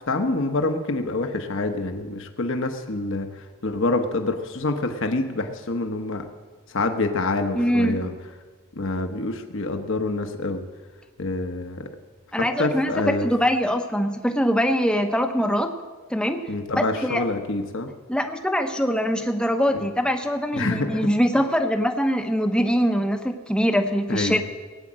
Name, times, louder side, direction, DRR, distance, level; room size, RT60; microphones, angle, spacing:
voice 1, 0.1-6.3 6.7-8.1 8.8-10.6 11.2-11.9 12.3-13.3 16.5-17.9 19.7-19.9 20.5-21.1 24.1-24.4, left 2 dB, 60° left, 6 dB, 1.0 m, -26 dB
voice 2, 7.6-8.0 12.3-15.7 16.1-16.4 16.8-17.2 18.1-24.4, equal, 5° left, 6 dB, 0.8 m, -23 dB
17.5 x 9.1 x 7.5 m, 1.4 s
head